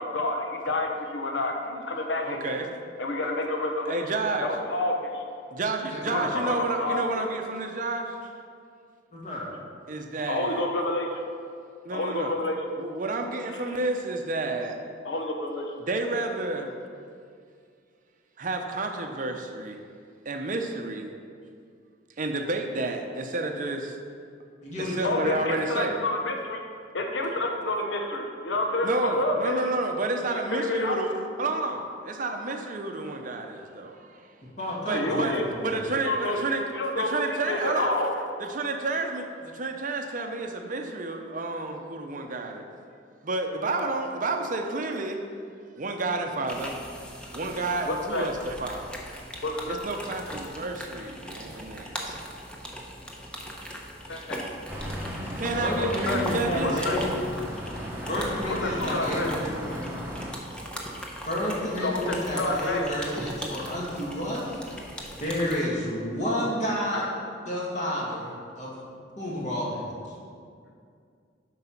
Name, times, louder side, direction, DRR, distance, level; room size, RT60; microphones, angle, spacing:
voice 1, 0.0-2.6 3.0-4.0 4.4-5.3 6.1-7.3 10.3-11.2 11.9-12.6 15.0-15.7 25.0-26.6 26.9-29.6 30.3-31.0 34.9-35.5 36.0-36.4 36.7-38.1 47.9-48.3 49.4-49.8 54.1-54.4 55.8-56.2 56.6-57.0 58.6-59.3 61.8-62.8 66.9-67.1, left 2 dB, 75° left, 2 dB, 0.8 m, -29 dB
voice 2, 2.2-2.7 3.9-4.5 5.5-8.1 9.9-10.6 11.8-12.3 12.8-14.8 15.8-16.7 18.4-19.8 20.3-21.1 22.2-24.0 24.8-26.0 28.8-31.1 31.4-34.2 34.9-36.6 37.0-38.0 38.4-42.6 43.2-45.2 45.8-46.8 47.3-48.8 49.7-52.2 55.4-56.7, right 2 dB, 45° right, 4 dB, 0.7 m, -30 dB
voice 3, 5.9-6.3 9.1-9.5 24.6-25.3 34.6-35.7 55.6-57.0 58.1-59.8 61.2-64.6 65.2-67.1 67.5-68.8 69.2-69.9, left 1 dB, 40° left, -5 dB, 2.1 m, -30 dB
sound 1, 46.5-65.6, equal, 5° left, 0.8 m, -39 dB
sound 2, 54.7-60.3, equal, 10° right, 1.0 m, -36 dB
7.9 x 5.5 x 5.8 m, 2.3 s
head